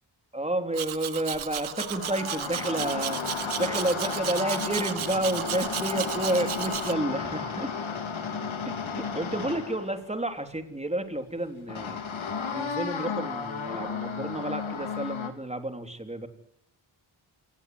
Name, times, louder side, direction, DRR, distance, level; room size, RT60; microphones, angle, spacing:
voice 1, 0.3-7.7 8.7-12.0 12.5-16.3, right 1 dB, 15° right, 7 dB, 3.7 m, -30 dB
Domestic sounds home sounds, 0.7-6.9, right 10 dB, 90° right, 1.1 m, -34 dB
sound 1, 1.1-10.1 11.7-15.3, left 5 dB, 80° left, 3.8 m, -34 dB
27.5 x 19.5 x 9.8 m, 0.69 s
cardioid pair, 75°, 47 cm